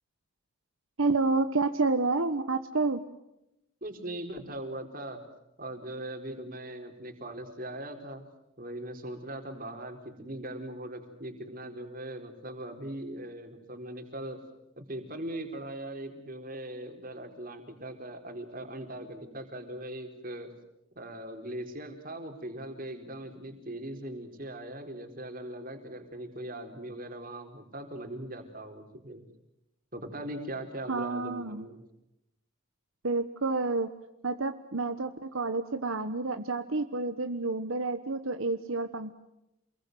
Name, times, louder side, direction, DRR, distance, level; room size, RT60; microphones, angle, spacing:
voice 1, 1.0-3.0 30.9-31.6 33.0-33.9 34.2-39.1, right 3 dB, 75° right, 8 dB, 1.3 m, -29 dB
voice 2, 3.8-5.2 5.6-8.2 8.6-14.4 14.8-20.5 21.0-29.2 29.9-31.8, right 1 dB, 40° right, 5 dB, 4.2 m, -40 dB
28.0 x 22.0 x 7.9 m, 0.88 s
head